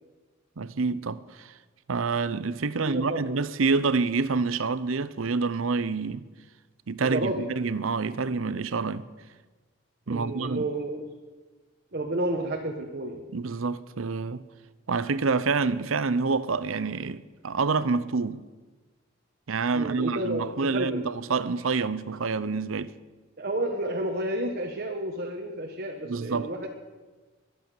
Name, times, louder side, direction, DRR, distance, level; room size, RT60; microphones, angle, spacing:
voice 1, 0.6-1.5 1.9-6.2 6.9-9.1 10.1-10.7 13.3-14.4 14.9-18.4 19.5-22.9 26.1-26.5, right 4 dB, 80° right, 0.7 m, -27 dB
voice 2, 2.7-3.4 7.0-7.5 10.1-11.1 11.9-13.2 19.7-21.0 23.4-26.7, right 1 dB, 50° right, 1.3 m, -31 dB
23.0 x 8.4 x 6.8 m
head